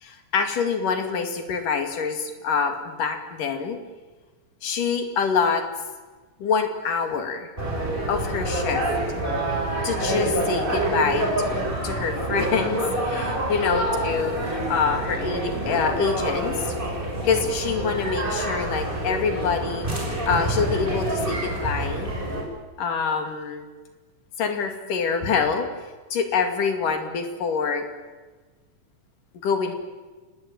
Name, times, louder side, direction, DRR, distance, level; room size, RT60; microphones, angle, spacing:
voice 1, 0.0-3.8 4.6-5.6 6.4-7.5 8.1-8.9 9.8-16.8 17.2-19.9 20.3-22.1 22.8-23.7 24.4-25.7 26.1-27.9 29.4-29.7, left 5 dB, 80° left, 6 dB, 4.0 m, -26 dB
sound 1, 7.6-22.4, right 1 dB, 15° right, 6.5 m, -27 dB
27.0 x 19.0 x 9.1 m, 1.3 s
omnidirectional pair, 3.7 m